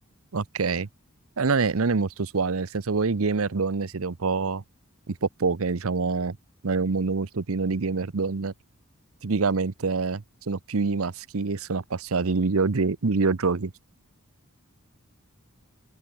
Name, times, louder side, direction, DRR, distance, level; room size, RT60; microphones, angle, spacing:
voice 1, 0.3-0.9 1.4-4.6 5.1-6.4 6.6-8.5 9.2-13.7, right 4 dB, 70° right, 0.8 m, -26 dB
open air
head